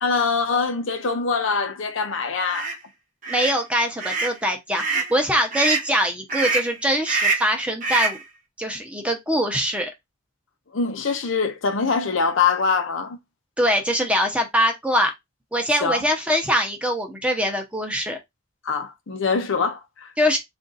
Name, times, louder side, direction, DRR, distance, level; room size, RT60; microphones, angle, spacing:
voice 1, 0.0-2.7 10.7-13.2 15.8-16.0 18.6-20.1, left 5 dB, 85° left, 0.7 m, -23 dB
sound 1, 2.5-2.7 3.2-3.6 4.0-4.4 4.7-5.1 5.5-5.9 6.3-6.7 7.1-7.5 7.8-8.2, right 4 dB, 40° right, 0.9 m, -25 dB
voice 2, 3.3-8.2 8.6-9.9 13.6-15.1 15.5-18.2 20.2-20.4, equal, 5° right, 0.8 m, -23 dB
3.8 x 2.6 x 3.9 m
head